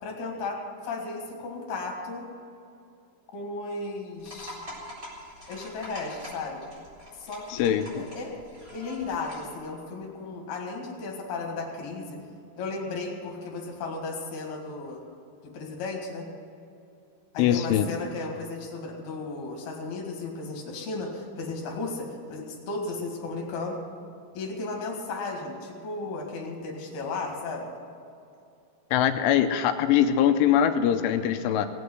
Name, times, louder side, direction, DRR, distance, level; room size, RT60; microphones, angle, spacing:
voice 1, 0.0-2.2 3.3-4.6 5.5-6.6 7.2-7.6 8.0-8.3 8.7-12.2 12.6-15.0 15.4-16.3 17.3-23.8 24.4-27.7, left 3 dB, 60° left, 0 dB, 3.5 m, -35 dB
sound 1, 4.2-9.5, equal, 20° right, 3.8 m, -44 dB
voice 2, 7.5-8.1 17.4-17.9 28.9-31.7, left 10 dB, 80° left, 8 dB, 3.0 m, -22 dB
19.0 x 8.5 x 8.0 m, 2.6 s
omnidirectional pair, 5.8 m